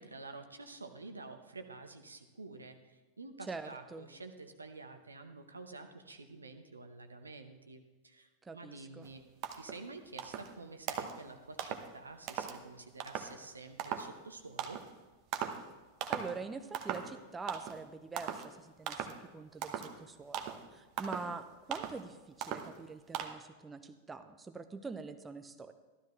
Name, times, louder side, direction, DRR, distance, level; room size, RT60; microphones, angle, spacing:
voice 1, 0.0-9.2 9.5-14.8, right 3 dB, 80° right, 7 dB, 0.9 m, -49 dB
voice 2, 3.5-4.1 8.4-9.1 16.1-25.7, right 4 dB, 15° right, 8 dB, 0.6 m, -45 dB
sound 1, 9.0-9.1 9.4-9.8 10.2-10.5 10.9-11.2 11.6-11.9 12.3-12.6 13.0-13.3 13.8-14.1 14.6-14.9 15.3-15.6 16.0-16.4 16.7-17.1 17.5-17.8 18.2-18.5 18.9-19.2 19.6-19.9 20.3-20.6 21.0-21.3 21.7-22.0 22.4-22.7 23.1-23.3, right 9 dB, 40° right, 0.9 m, -39 dB
14.0 x 12.5 x 3.2 m, 1.2 s
figure-of-eight pair, 90°, 0 cm